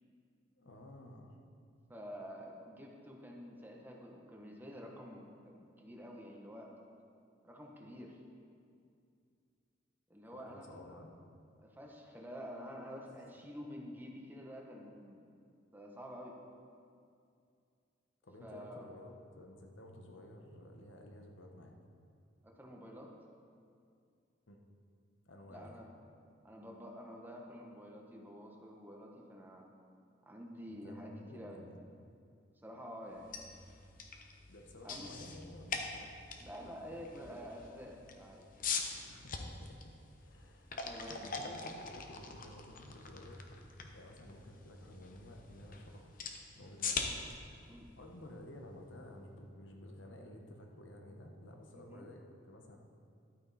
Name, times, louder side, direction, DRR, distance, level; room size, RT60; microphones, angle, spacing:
voice 1, 0.6-1.4 10.3-11.1 18.2-21.8 24.5-24.6 25.3-25.8 30.7-31.8 34.5-36.1 36.8-37.4 39.1-39.8 40.2-40.7 41.4-43.4 43.9-46.1 46.5-47.1 48.0-52.8, left 1 dB, 90° left, 2 dB, 1.2 m, -53 dB
voice 2, 1.9-6.7 7.4-8.2 10.1-10.9 11.6-15.3 15.7-16.4 18.4-18.9 22.4-23.1 25.5-25.9 26.4-29.7 30.3-31.6 32.6-33.3 34.8-35.3 36.4-38.5 40.7-41.3 47.6-47.9 51.7-52.1, equal, 10° right, -1 dB, 1.1 m, -49 dB
sound 1, 33.1-49.0, left 5 dB, 45° left, 0.8 m, -44 dB
12.0 x 8.9 x 4.2 m, 2.4 s
head